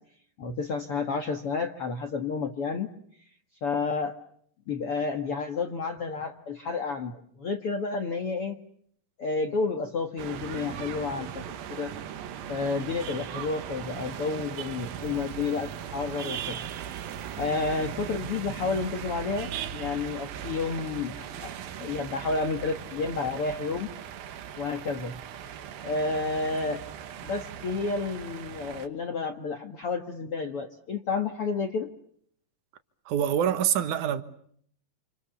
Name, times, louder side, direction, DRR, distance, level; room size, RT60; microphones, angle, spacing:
voice 1, 0.4-2.9 3.6-4.2 4.7-8.6 9.2-11.9 12.5-16.6 17.4-21.5 21.8-23.9 24.6-25.2 25.8-26.8 27.2-31.9, left 4 dB, 50° left, 2.1 m, -30 dB
sound 1, 10.2-28.9, right 9 dB, 90° right, 3.3 m, -38 dB
voice 2, 33.1-34.2, right 9 dB, 65° right, 2.7 m, -25 dB
29.0 x 28.0 x 7.1 m
omnidirectional pair, 4.0 m